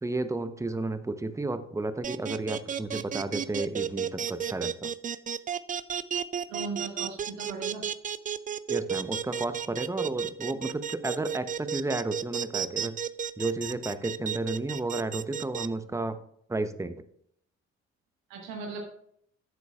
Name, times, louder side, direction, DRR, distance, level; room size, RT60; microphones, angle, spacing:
voice 1, 0.0-4.9 8.7-13.0 13.4-16.2 16.5-17.0, right 2 dB, 10° right, 11 dB, 0.8 m, -32 dB
sound 1, 2.0-15.7, right 8 dB, 25° right, 0.4 m, -32 dB
voice 2, 6.5-7.8 18.3-18.8, right 4 dB, 75° right, 2 dB, 1.6 m, -38 dB
11.0 x 8.2 x 2.4 m, 0.66 s
hypercardioid pair, 50°, 36 cm